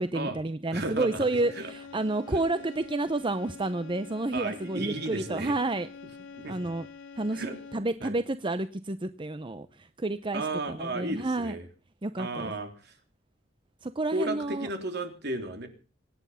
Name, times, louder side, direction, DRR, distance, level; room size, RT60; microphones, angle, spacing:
voice 1, 0.0-5.9 6.5-6.9 7.2-7.5 7.7-11.5 12.0-12.5 13.8-14.7, right 2 dB, 25° right, 12 dB, 0.7 m, -30 dB
voice 2, 0.7-1.3 1.5-1.7 2.3-2.4 4.3-5.5 6.4-6.6 7.3-7.6 8.0-8.2 10.3-11.7 12.2-12.9 14.1-15.7, right 2 dB, 55° right, 6 dB, 3.6 m, -34 dB
sound 1, 0.9-8.1, left 5 dB, 80° left, 3.3 m, -46 dB
25.5 x 9.7 x 5.7 m, 0.37 s
head